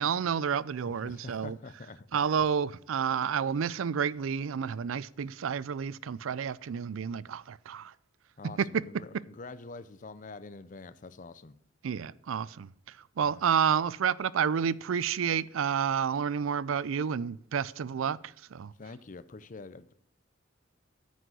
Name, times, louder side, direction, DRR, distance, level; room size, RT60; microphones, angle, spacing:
voice 1, 0.0-1.6 2.1-7.9 8.6-8.8 11.8-12.7 13.2-18.2 18.5-18.7, right 7 dB, 85° right, 0.4 m, -30 dB
voice 2, 0.9-2.2 8.4-11.6 13.2-13.5 18.8-19.9, left 3 dB, 40° left, 0.6 m, -46 dB
9.2 x 6.3 x 6.7 m
head